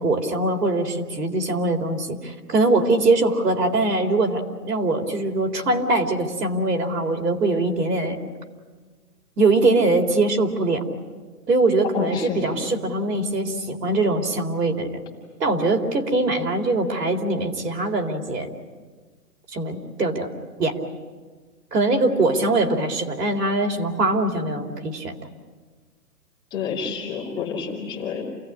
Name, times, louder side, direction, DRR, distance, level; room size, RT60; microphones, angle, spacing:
voice 1, 0.0-8.2 9.4-10.8 11.5-15.0 15.4-18.5 19.5-20.3 20.6-20.8 21.7-25.1, right 2 dB, 75° right, 4 dB, 3.9 m, -22 dB
voice 2, 11.9-12.6 26.5-28.3, left 6 dB, 10° left, -5 dB, 2.7 m, -29 dB
28.5 x 17.5 x 9.9 m, 1.4 s
hypercardioid pair, 175°, 48 cm